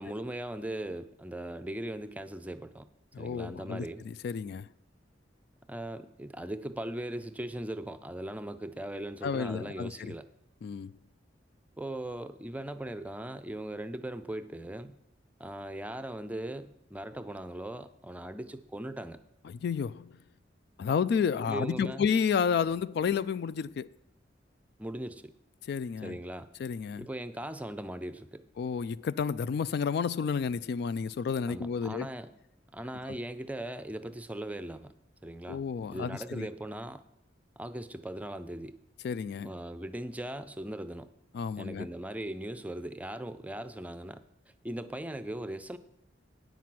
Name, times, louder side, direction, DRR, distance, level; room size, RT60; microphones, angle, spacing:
voice 1, 0.0-2.9 3.2-4.1 5.7-10.3 11.8-15.0 15.4-19.2 21.4-22.0 24.8-25.3 26.0-26.5 27.0-28.4 31.5-32.3 32.7-34.9 35.2-35.6 35.9-37.0 37.6-38.8 39.4-41.1 41.6-44.2 44.6-45.8, right 1 dB, 10° right, 0.5 m, -39 dB
voice 2, 3.1-4.7 9.2-10.1 10.6-10.9 19.5-20.1 20.8-23.9 25.7-26.2 26.6-27.1 28.6-32.1 35.5-36.5 39.0-39.5 41.3-41.9, left 6 dB, 60° left, 0.3 m, -31 dB
9.2 x 5.9 x 7.7 m
head